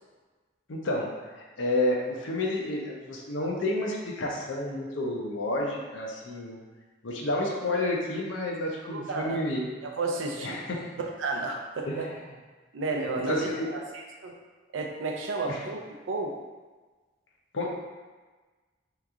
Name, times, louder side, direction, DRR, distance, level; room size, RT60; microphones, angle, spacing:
voice 1, 0.7-1.1 1.6-6.6 7.0-9.7 10.4-10.8 11.9-12.2 13.3-13.7 15.5-15.6 17.5-17.7, left 1 dB, 80° left, -1 dB, 0.6 m, -30 dB
voice 2, 8.9-9.4 9.8-10.6 11.2-12.1 12.7-13.5 13.9-14.3 14.7-15.8 16.1-16.3, right 3 dB, 85° right, 1 dB, 0.5 m, -31 dB
2.9 x 2.4 x 3.6 m, 1.3 s
head